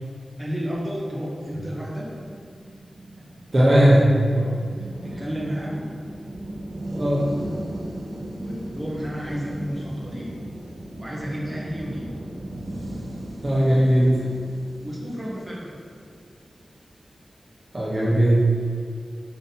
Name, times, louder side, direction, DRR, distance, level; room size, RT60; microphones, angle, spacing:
voice 1, 0.4-2.1 4.8-5.9 8.3-10.3 10.9-12.0 14.8-15.7, equal, 5° right, -5 dB, 1.6 m, -32 dB
sound 1, 1.4-16.8, right 1 dB, 60° right, 1.5 m, -37 dB
voice 2, 3.5-4.1 4.4-4.5 6.9-7.3 13.4-14.3 17.7-18.5, equal, 35° right, -6 dB, 1.1 m, -18 dB
6.2 x 5.5 x 4.3 m, 2.2 s
wide cardioid pair, 105°, 0 cm